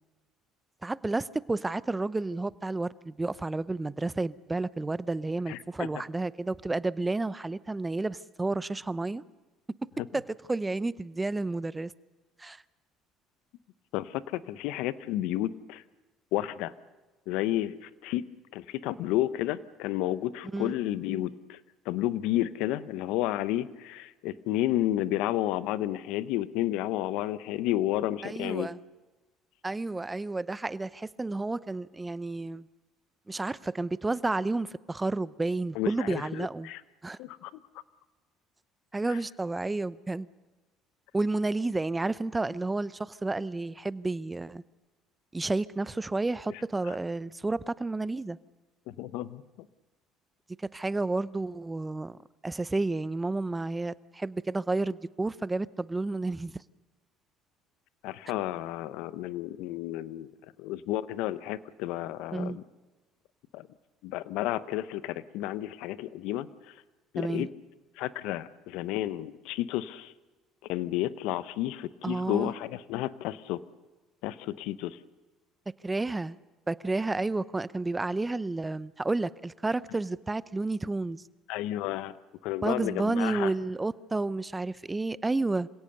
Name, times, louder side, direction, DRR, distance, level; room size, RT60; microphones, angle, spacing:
voice 1, 0.8-9.2 10.1-10.2 10.5-11.9 12.4-12.6 20.5-20.7 28.2-28.8 29.6-32.7 33.3-36.7 37.0-37.2 38.9-40.3 41.1-44.6 45.3-48.4 50.7-52.2 52.4-56.5 62.3-62.6 67.2-67.5 72.0-72.5 75.8-76.4 76.7-81.2 82.6-85.7, right 2 dB, 15° right, 0.7 m, -31 dB
voice 2, 5.5-5.9 13.9-15.8 16.3-16.7 17.3-18.3 18.5-21.6 21.8-28.7 35.7-36.8 37.2-37.6 39.1-39.2 46.5-46.6 46.9-47.0 48.9-49.4 58.0-60.3 60.6-62.6 63.5-63.7 64.0-66.7 67.1-67.5 68.0-70.1 70.7-73.6 74.2-75.0 81.5-82.1 82.4-83.5, left 14 dB, 75° left, 0.8 m, -31 dB
26.5 x 17.0 x 6.7 m
hypercardioid pair, 70°, 0 cm